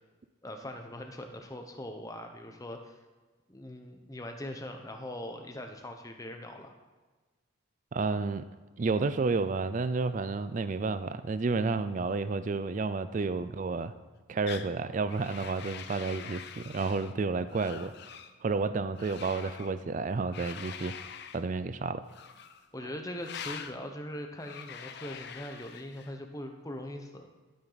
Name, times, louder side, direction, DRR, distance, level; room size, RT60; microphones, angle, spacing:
voice 1, 0.4-2.9 3.5-6.8 22.7-27.3, left 1 dB, 15° left, 4 dB, 0.9 m, -41 dB
voice 2, 7.9-8.5 8.8-13.9 14.3-17.9 18.4-20.9 21.3-22.0, right 4 dB, 40° right, 13 dB, 0.3 m, -31 dB
sound 1, 14.5-14.7 15.1-17.1 17.5-18.3 19.0-19.7 20.3-21.4 22.1-22.7 23.2-23.8 24.4-26.1, left 7 dB, 55° left, 0.6 m, -44 dB
12.0 x 8.7 x 4.0 m, 1.3 s
head